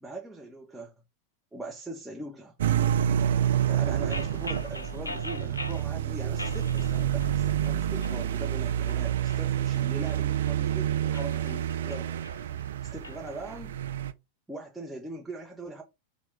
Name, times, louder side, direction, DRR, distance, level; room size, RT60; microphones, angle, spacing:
voice 1, 0.0-0.9 1.5-2.5 3.7-12.2 12.8-13.8 14.5-15.8, right 2 dB, 5° right, 0.6 m, -41 dB
sound 1, 2.6-14.1, right 10 dB, 60° right, 0.3 m, -28 dB
sound 2, 4.1-5.9 6.4-7.4 7.6-8.2 8.7-10.5 11.0-13.2, left 2 dB, 80° left, 0.3 m, -41 dB
4.4 x 2.1 x 3.3 m
figure-of-eight pair, 90°, 0 cm